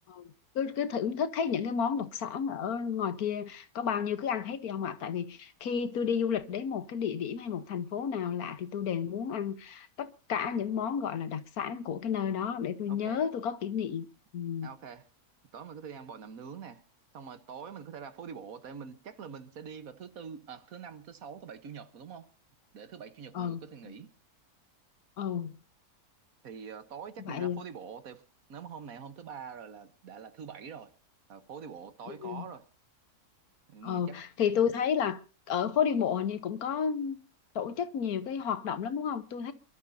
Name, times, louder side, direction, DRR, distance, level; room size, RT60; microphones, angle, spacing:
voice 1, 0.1-14.1 14.3-14.7 23.3-23.6 25.2-25.5 27.2-27.6 32.1-32.4 33.8-35.2 35.5-37.2 37.5-39.5, left 7 dB, 75° left, 1.5 m, -31 dB
voice 2, 12.9-13.2 14.6-15.1 15.5-16.8 17.1-22.3 22.7-24.1 26.4-28.2 28.5-30.9 31.3-32.6 33.7-34.2, right 7 dB, 70° right, 1.5 m, -45 dB
28.5 x 12.5 x 2.7 m
omnidirectional pair, 1.6 m